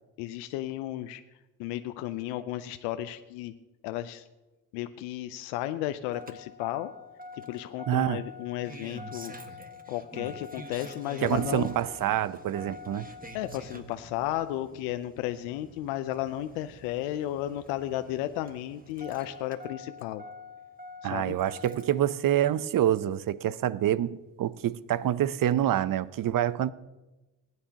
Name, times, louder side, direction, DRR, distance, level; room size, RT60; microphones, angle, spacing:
voice 1, 0.2-1.2 1.6-3.5 3.8-4.3 4.7-6.9 7.5-9.3 9.9-11.7 13.3-20.2 21.0-21.4, left 13 dB, 85° left, 0.7 m, -33 dB
Engine starting, 6.1-22.0 23.3-23.4, left 2 dB, 20° right, 1.6 m, -46 dB
voice 2, 7.9-8.2 11.2-13.1 21.0-26.7, right 11 dB, 55° right, 0.7 m, -27 dB
20.0 x 9.7 x 2.9 m
supercardioid pair, 60°, 41 cm